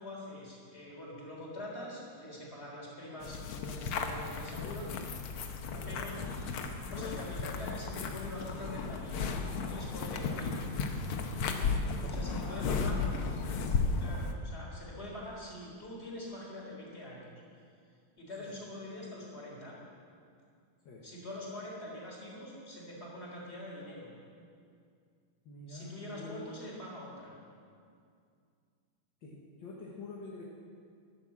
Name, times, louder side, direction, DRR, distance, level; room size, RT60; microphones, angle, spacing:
voice 1, 0.0-4.9 5.9-6.2 6.9-10.6 12.1-13.0 14.0-17.3 18.2-19.8 21.0-24.1 25.7-27.4, left 1 dB, 30° left, -3 dB, 4.0 m, -44 dB
sound 1, 3.2-14.3, left 4 dB, 90° left, 1.9 m, -34 dB
voice 2, 5.7-6.0 12.4-13.1 18.4-18.6 20.8-21.1 25.5-26.6 29.2-30.4, left 2 dB, 65° left, -4 dB, 2.1 m, -46 dB
13.5 x 11.5 x 7.4 m, 2.3 s
omnidirectional pair, 2.3 m